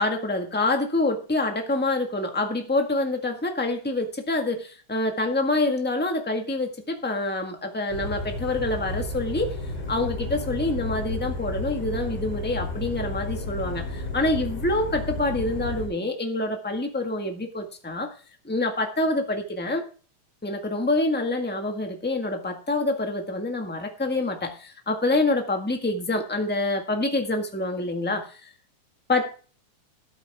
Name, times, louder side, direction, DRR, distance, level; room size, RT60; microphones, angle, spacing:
voice 1, 0.0-9.5 9.9-18.1 18.4-19.9 20.4-28.5 29.1-29.3, left 2 dB, 10° left, 4 dB, 0.6 m, -26 dB
sound 1, 7.9-15.9, left 2 dB, 55° left, 5.8 m, -32 dB
13.0 x 9.1 x 3.6 m, 0.38 s
omnidirectional pair, 3.5 m